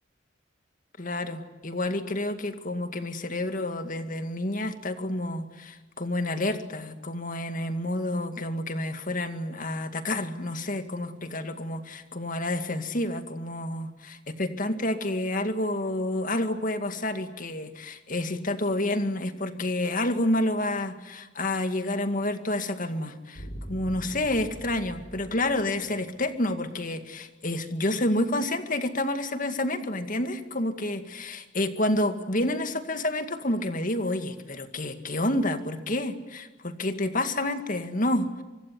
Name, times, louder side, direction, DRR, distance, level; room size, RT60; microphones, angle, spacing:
voice 1, 1.0-38.4, left 1 dB, 45° left, 8 dB, 2.2 m, -29 dB
sound 1, 23.4-26.6, equal, 60° left, 5.2 m, -42 dB
25.5 x 24.0 x 9.5 m, 1.2 s
head